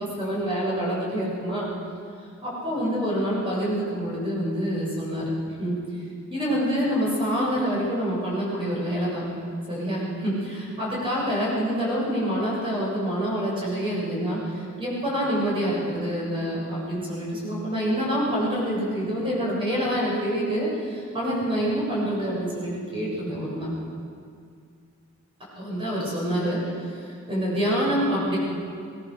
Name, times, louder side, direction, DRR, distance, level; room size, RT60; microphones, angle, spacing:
voice 1, 0.0-1.7 2.4-5.3 5.6-5.8 6.3-9.3 9.7-23.7 25.6-26.6 26.9-28.4, equal, 25° right, -6 dB, 7.2 m, -26 dB
23.0 x 19.5 x 6.7 m, 2.2 s
head